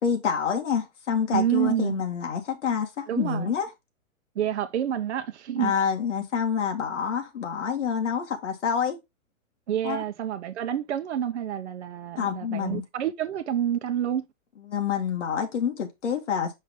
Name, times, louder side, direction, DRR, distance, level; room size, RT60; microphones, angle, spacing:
voice 1, 0.0-3.7 5.6-9.0 9.8-10.0 12.2-12.8 14.6-16.5, left 7 dB, 60° left, 2.0 m, -27 dB
voice 2, 1.3-2.0 3.1-3.5 4.4-5.7 9.7-14.2, right 10 dB, 55° right, 0.8 m, -28 dB
5.4 x 5.0 x 3.7 m
hypercardioid pair, 180°, 40 cm